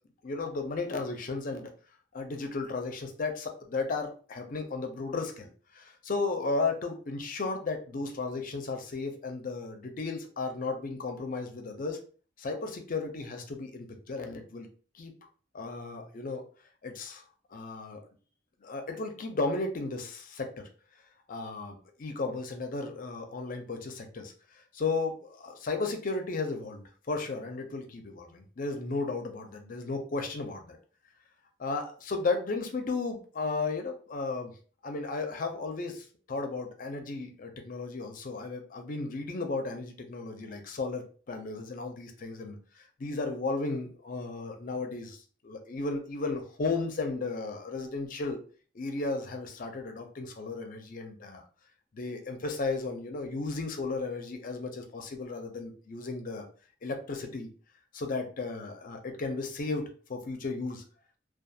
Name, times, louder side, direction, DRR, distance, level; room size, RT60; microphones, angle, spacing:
voice 1, 0.2-1.7 2.1-12.0 12.4-14.7 14.9-15.1 15.5-16.4 16.8-17.2 17.5-18.0 18.6-20.5 21.3-30.8 31.6-34.5 34.8-42.6 43.0-48.4 48.7-51.4 51.9-56.5 56.8-57.5 57.9-60.8, left 3 dB, 50° left, 5 dB, 0.5 m, -34 dB
2.3 x 2.3 x 2.7 m, 0.40 s
head